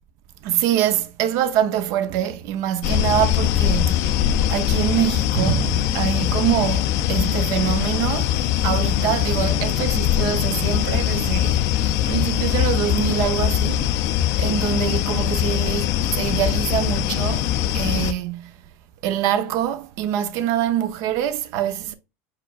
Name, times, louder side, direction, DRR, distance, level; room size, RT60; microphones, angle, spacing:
voice 1, 0.4-4.1 4.5-11.6 12.1-14.0 14.4-17.5 17.7-18.5 19.0-21.9, right 10 dB, 55° right, 0.6 m, -24 dB
sound 1, 2.8-18.1, left 11 dB, 55° left, 0.5 m, -22 dB
4.9 x 4.2 x 2.4 m
supercardioid pair, 120°, 7 cm